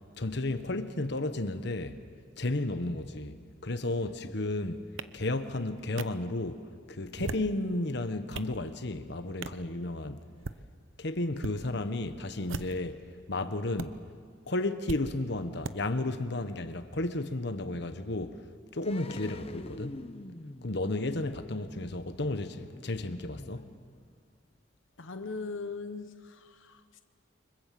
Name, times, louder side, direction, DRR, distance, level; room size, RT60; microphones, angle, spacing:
voice 1, 0.2-2.0 2.4-4.8 5.1-6.6 6.9-10.2 11.0-13.0 13.3-14.0 14.5-18.4 18.7-20.1 20.6-23.7, left 2 dB, 60° left, 1.3 m, -33 dB
sound 1, 5.0-5.1 6.0-6.1 7.0-7.5 8.1-8.5 9.4-9.6 10.3-10.6 11.4-11.6 12.4-12.9 13.8-13.9 14.9-15.0 15.6-15.8, right 3 dB, 90° right, 0.9 m, -38 dB
voice 2, 9.7-10.2 25.0-27.0, left 4 dB, 85° left, 1.1 m, -40 dB
sound 2, 18.8-24.3 24.5-24.6, left 1 dB, 30° left, 0.8 m, -46 dB
29.0 x 25.0 x 7.7 m
head